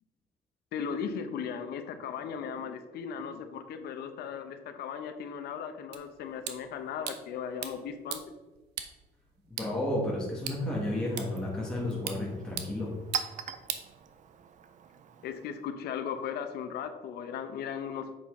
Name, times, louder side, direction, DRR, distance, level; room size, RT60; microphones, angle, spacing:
voice 1, 0.7-8.2 15.2-18.1, left 7 dB, 70° left, 8 dB, 0.9 m, -37 dB
sound 1, 5.9-14.5, right 10 dB, 85° right, 0.8 m, -43 dB
voice 2, 9.5-12.9, left 1 dB, 5° left, -6 dB, 1.8 m, -32 dB
Chink clink, 10.2-15.7, right 7 dB, 45° right, 0.6 m, -43 dB
7.7 x 5.8 x 3.8 m, 1.2 s
cardioid pair, 110°, 17 cm